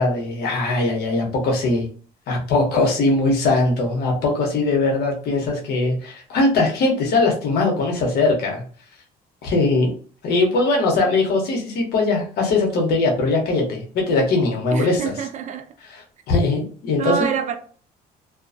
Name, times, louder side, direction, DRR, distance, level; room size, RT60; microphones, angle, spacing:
voice 1, 0.0-1.9 2.3-8.6 9.4-9.9 10.2-15.1 15.9-17.2, left 3 dB, 70° left, 0.9 m, -20 dB
voice 2, 14.7-15.7 17.0-17.6, right 7 dB, 45° right, 0.4 m, -26 dB
2.4 x 2.2 x 2.5 m
cardioid pair, 110°, 17 cm